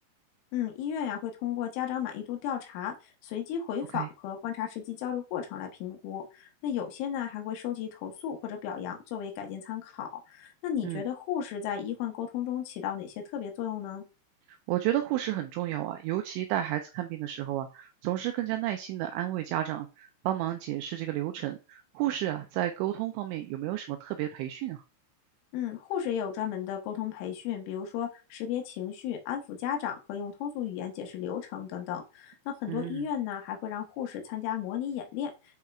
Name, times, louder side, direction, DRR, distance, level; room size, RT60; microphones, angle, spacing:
voice 1, 0.5-14.1 25.5-35.3, left 9 dB, 80° left, 2 dB, 3.6 m, -34 dB
voice 2, 14.7-24.8 32.7-33.0, right 13 dB, 80° right, 7 dB, 2.7 m, -32 dB
12.0 x 4.4 x 2.4 m, 0.32 s
omnidirectional pair, 5.5 m